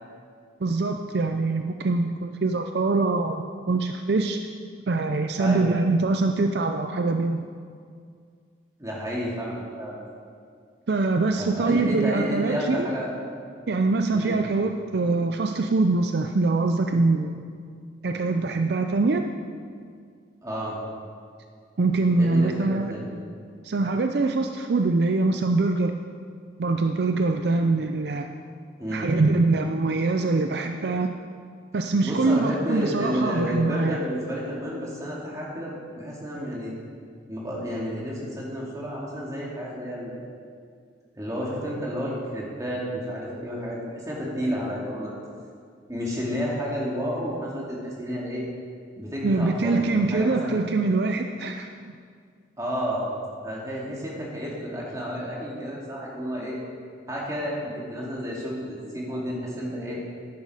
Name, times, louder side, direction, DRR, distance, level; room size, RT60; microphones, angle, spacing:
voice 1, 0.6-4.4 4.9-7.4 10.9-12.9 13.7-17.4 18.0-19.3 21.8-22.9 23.6-26.0 26.6-28.3 28.9-31.1 31.7-34.0 49.2-51.7, right 3 dB, 60° right, 5 dB, 0.5 m, -23 dB
voice 2, 5.4-5.8 8.8-10.0 11.4-13.1 14.1-14.4 20.4-20.8 22.2-23.1 28.8-29.3 32.0-36.7 37.3-40.3 41.1-45.1 45.9-48.4 49.0-50.6 52.6-53.1 53.4-56.6 57.1-60.0, equal, 20° right, -4 dB, 2.4 m, -31 dB
10.5 x 10.5 x 4.9 m, 2.1 s
head